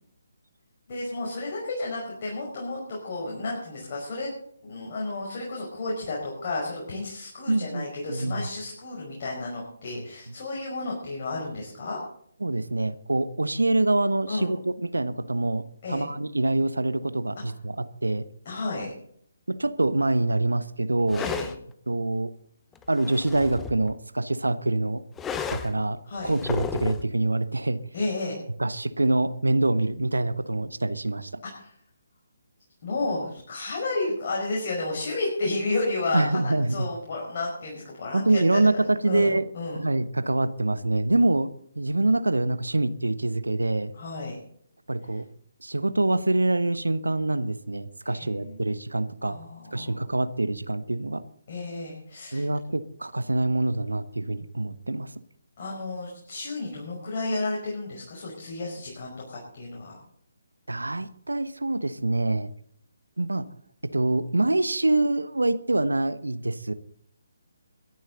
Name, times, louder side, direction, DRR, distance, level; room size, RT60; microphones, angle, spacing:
voice 1, 0.9-4.3 4.6-12.0 14.3-14.5 15.8-16.0 18.5-18.9 21.2-21.5 26.1-26.3 27.9-28.4 31.5-31.7 32.8-39.8 43.9-44.4 48.1-48.6 49.2-49.9 51.5-52.5 55.6-60.0, left 2 dB, 40° left, -3 dB, 5.3 m, -32 dB
voice 2, 7.5-8.5 9.9-10.0 12.4-15.6 15.9-18.2 19.5-21.2 21.9-22.3 22.9-25.0 25.4-26.0 26.2-27.8 28.6-31.3 36.1-36.9 38.1-39.5 39.7-41.5 41.7-43.9 44.9-45.2 45.6-49.4 49.7-51.2 52.3-55.1 60.7-62.5 63.2-63.4 63.9-66.7, right 2 dB, 80° right, 13 dB, 1.2 m, -25 dB
sound 1, 21.1-21.6 22.8-23.9 25.2-25.8 26.2-27.1, left 6 dB, 10° left, 0.8 m, -33 dB
22.5 x 11.0 x 4.0 m, 0.65 s
figure-of-eight pair, 145°, 0 cm